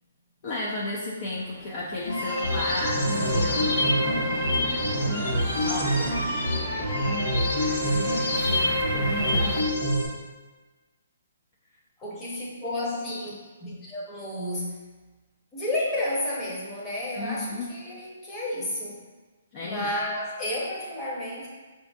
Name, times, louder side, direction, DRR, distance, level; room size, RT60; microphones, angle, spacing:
voice 1, 0.4-4.9 5.5-6.2 7.3-9.6 17.2-17.7 19.5-19.9, left 2 dB, 40° left, -4 dB, 0.5 m, -34 dB
sound 1, 1.4-9.6, right 4 dB, 30° right, 0.4 m, -38 dB
sound 2, 2.1-10.1, left 1 dB, 75° left, 0.9 m, -25 dB
Strum, 3.1-7.2, equal, 75° right, 0.6 m, -40 dB
voice 2, 12.0-13.3 13.6-14.7 15.5-19.0 19.6-21.5, left 1 dB, 15° left, -5 dB, 0.9 m, -31 dB
4.8 x 2.5 x 2.5 m, 1.3 s
hypercardioid pair, 150°, 0 cm